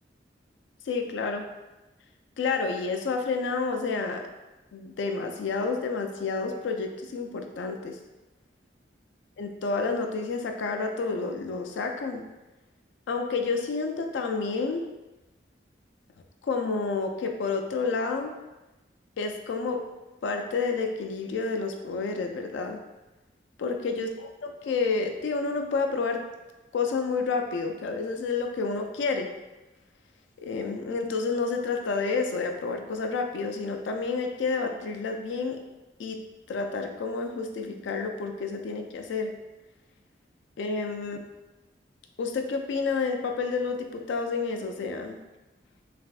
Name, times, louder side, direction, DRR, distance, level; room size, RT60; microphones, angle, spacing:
voice 1, 0.9-1.5 2.4-4.2 4.7-8.0 9.4-12.2 13.1-14.8 16.4-18.3 19.2-19.8 20.2-22.8 23.6-24.1 24.4-26.2 26.7-29.3 30.4-35.6 36.0-36.2 36.5-39.3 40.6-41.2 42.2-45.2, left 4 dB, 85° left, 4 dB, 0.3 m, -29 dB
3.3 x 2.5 x 2.4 m, 1.1 s
head